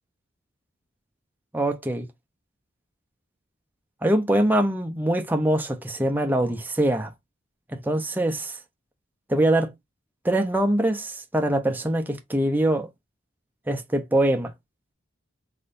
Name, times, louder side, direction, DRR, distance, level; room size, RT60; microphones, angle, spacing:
voice 1, 1.5-2.1 4.0-7.1 7.7-8.6 9.3-9.7 10.2-12.9 13.7-14.5, right 1 dB, 10° right, 0.6 m, -23 dB
3.8 x 3.7 x 2.5 m
head